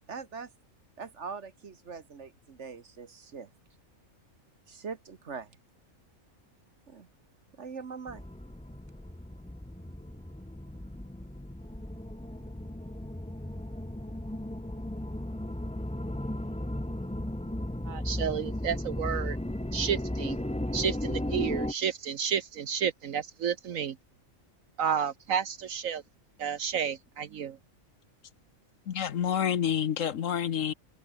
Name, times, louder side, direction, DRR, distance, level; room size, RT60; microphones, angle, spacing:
voice 1, 0.1-0.5 1.0-3.5 4.7-5.5 6.9-7.1 7.6-8.2, right 5 dB, 55° right, 1.7 m, -42 dB
sound 1, 8.1-21.7, left 1 dB, 5° left, 0.9 m, -35 dB
voice 2, 17.9-19.4 19.7-20.4 20.7-24.0 24.8-26.0 26.4-27.6, right 8 dB, 70° right, 1.4 m, -31 dB
voice 3, 28.9-30.7, left 9 dB, 70° left, 1.3 m, -28 dB
omnidirectional pair, 1.4 m